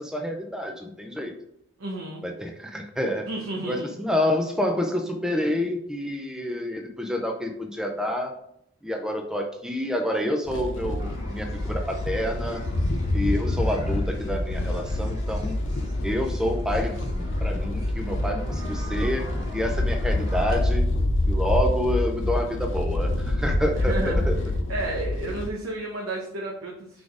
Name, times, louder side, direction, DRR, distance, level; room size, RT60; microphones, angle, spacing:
voice 1, 0.0-1.3 2.2-3.3 3.6-8.3 8.8-12.6 13.1-15.6 16.0-19.3 19.5-20.8 21.3-24.4, left 1 dB, 5° right, 3 dB, 0.5 m, -28 dB
voice 2, 1.8-2.2 3.3-4.0 23.8-24.2 24.7-27.0, right 2 dB, 85° right, -1 dB, 1.0 m, -32 dB
sound 1, 10.5-25.5, left 1 dB, 65° left, 0.6 m, -27 dB
sound 2, 11.0-20.5, equal, 20° right, 1.2 m, -39 dB
4.9 x 4.2 x 4.8 m, 0.75 s
head